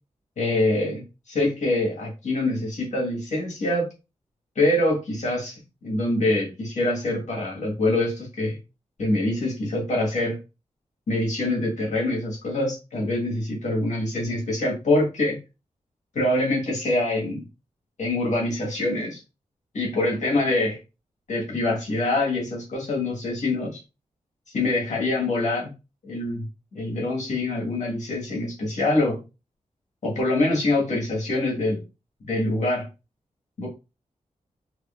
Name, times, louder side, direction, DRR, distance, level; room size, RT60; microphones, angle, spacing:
voice 1, 0.4-3.9 4.5-5.5 5.8-8.6 9.0-10.4 11.1-15.4 16.1-17.5 18.0-19.2 19.7-20.8 21.3-23.8 24.5-25.7 26.0-26.5 26.7-29.2 30.0-31.8 32.2-32.9 33.6-33.7, left 2 dB, 70° left, -1 dB, 1.5 m, -25 dB
3.7 x 2.9 x 2.5 m, 0.28 s
wide cardioid pair, 145°, 13 cm